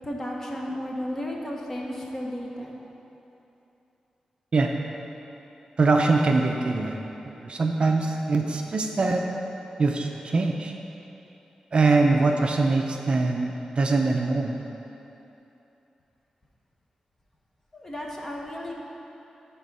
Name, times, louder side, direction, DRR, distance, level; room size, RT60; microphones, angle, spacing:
voice 1, 0.0-2.7 17.7-18.7, equal, 20° left, -2 dB, 1.0 m, -33 dB
voice 2, 5.8-7.0 7.4-9.2 9.8-10.7 11.7-14.6, right 3 dB, 50° right, 2 dB, 0.5 m, -23 dB
10.5 x 3.6 x 5.4 m, 3.0 s
wide cardioid pair, 120°, 2 cm